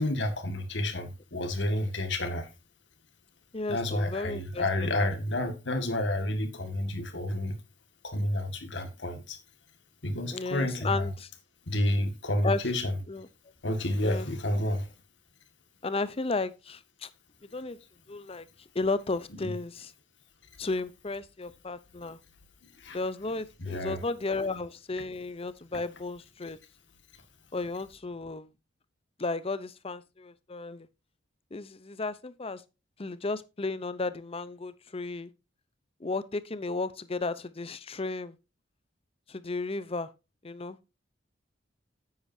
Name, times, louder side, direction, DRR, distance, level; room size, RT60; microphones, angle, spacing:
voice 1, 0.0-2.5 3.7-7.5 8.0-9.4 10.0-11.1 11.7-13.0 13.6-14.9 19.3-19.5 22.6-23.0 23.6-24.0, left 1 dB, 70° left, 1.9 m, -30 dB
voice 2, 3.5-5.1 10.3-11.3 12.4-12.6 13.1-13.3 14.0-14.3 15.8-17.1 17.5-17.8 18.1-18.5 18.7-19.9 20.6-22.2 22.9-26.6 27.5-28.5 29.2-30.9 31.5-32.6 33.0-35.3 36.0-38.4 39.3-40.1 40.4-40.8, left 3 dB, 30° left, 0.7 m, -34 dB
9.9 x 8.7 x 2.7 m
head